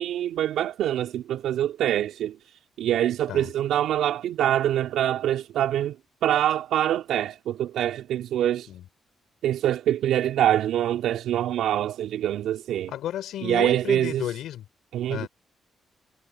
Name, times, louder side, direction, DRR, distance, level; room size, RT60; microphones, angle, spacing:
voice 1, 0.0-2.4 2.8-6.0 6.2-8.7 9.4-12.9 13.4-14.2 14.9-15.3, right 11 dB, 80° right, 2.7 m, -25 dB
voice 2, 12.9-14.7 15.1-15.3, left 12 dB, 80° left, 5.1 m, -33 dB
supercardioid pair, 50°, 0 cm